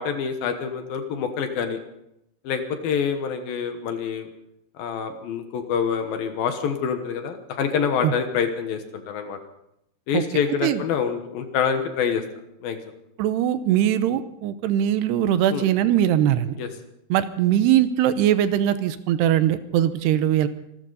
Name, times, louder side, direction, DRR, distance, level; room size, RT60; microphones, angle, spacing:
voice 1, 0.0-1.8 2.4-4.3 4.8-9.4 10.1-12.2 12.6-12.8 15.5-15.7 16.6-16.7, left 7 dB, 65° left, 7 dB, 2.8 m, -26 dB
voice 2, 13.2-16.6 17.1-20.5, right 11 dB, 85° right, 12 dB, 2.8 m, -21 dB
26.0 x 13.0 x 4.0 m, 0.82 s
omnidirectional pair, 4.9 m